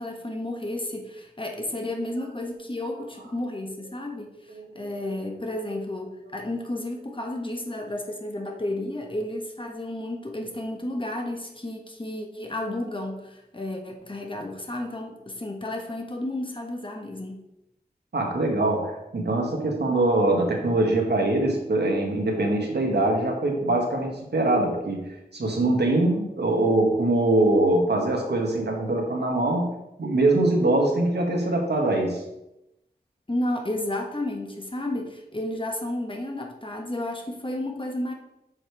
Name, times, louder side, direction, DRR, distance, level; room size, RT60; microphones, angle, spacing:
voice 1, 0.0-17.4 33.3-38.1, left 1 dB, 30° left, 2 dB, 1.2 m, -32 dB
voice 2, 18.1-29.7 30.0-32.2, right 2 dB, 90° right, 1 dB, 1.4 m, -23 dB
6.5 x 5.0 x 4.6 m, 0.89 s
wide cardioid pair, 70°, 17 cm